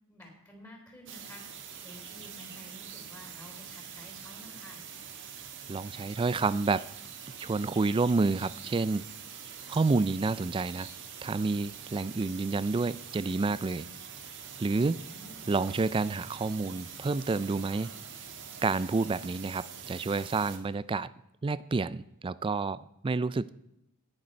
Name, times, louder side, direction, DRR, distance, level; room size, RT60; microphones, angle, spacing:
voice 1, 0.1-1.4 1.8-4.8 15.0-15.5, left 1 dB, 15° left, 0 dB, 3.9 m, -51 dB
sound 1, 1.1-20.6, right 7 dB, 55° right, 1.6 m, -45 dB
voice 2, 5.7-6.9 7.4-9.1 9.7-10.9 11.2-13.9 14.6-15.0 15.5-17.9 18.6-21.1 21.4-23.5, right 3 dB, 25° right, 17 dB, 0.3 m, -29 dB
19.0 x 6.6 x 4.4 m, 0.86 s
head